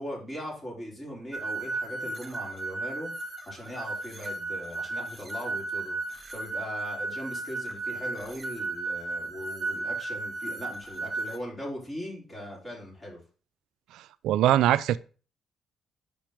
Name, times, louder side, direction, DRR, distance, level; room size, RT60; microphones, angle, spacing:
voice 1, 0.0-3.1 3.5-6.0 6.3-13.2, equal, 20° left, 3.6 m, -39 dB
sound 1, 1.3-11.4, right 3 dB, 20° right, 1.2 m, -34 dB
voice 2, 13.9-15.0, right 12 dB, 85° right, 0.3 m, -23 dB
5.3 x 4.4 x 5.0 m
cardioid pair, 90°, 0 cm